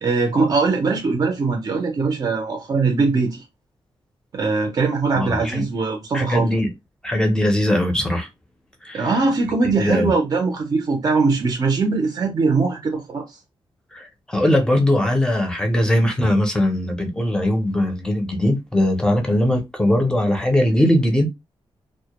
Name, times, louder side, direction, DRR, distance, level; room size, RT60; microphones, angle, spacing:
voice 1, 0.0-3.4 4.3-6.5 8.9-13.2, right 4 dB, 40° right, 0.5 m, -21 dB
voice 2, 5.1-5.6 6.1-6.7 7.0-8.3 8.8-9.1 9.8-10.1 13.9-21.3, left 1 dB, 10° left, 0.6 m, -20 dB
2.1 x 2.0 x 2.9 m
wide cardioid pair, 155°, 9 cm